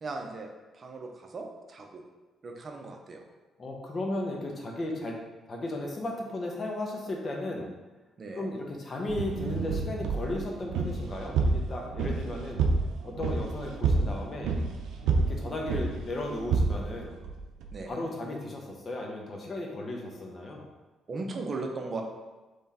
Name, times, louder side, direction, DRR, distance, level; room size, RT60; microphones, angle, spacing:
voice 1, 0.0-0.5 0.7-2.0 2.4-3.2 8.2-8.5 17.7-18.1 21.1-22.0, right 3 dB, 45° right, 3 dB, 0.7 m, -37 dB
voice 2, 3.6-5.2 5.5-7.7 8.3-12.7 13.0-14.5 15.2-17.2 17.9-20.7, left 2 dB, 40° left, 0 dB, 0.9 m, -35 dB
sound 1, 9.1-17.8, right 4 dB, 85° right, 0.5 m, -29 dB
3.6 x 3.3 x 4.2 m, 1.2 s
cardioid pair, 90°, 0 cm